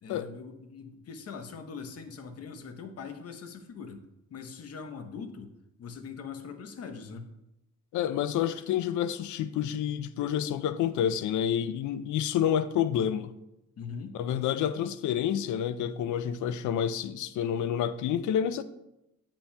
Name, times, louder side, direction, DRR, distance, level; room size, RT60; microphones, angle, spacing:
voice 1, 0.0-4.0 4.3-5.5 5.8-7.3 13.8-14.1, left 5 dB, 55° left, 0.8 m, -42 dB
voice 2, 7.9-13.3 14.1-18.6, left 9 dB, 75° left, 0.5 m, -29 dB
8.4 x 5.7 x 2.2 m
cardioid pair, 90°, 30 cm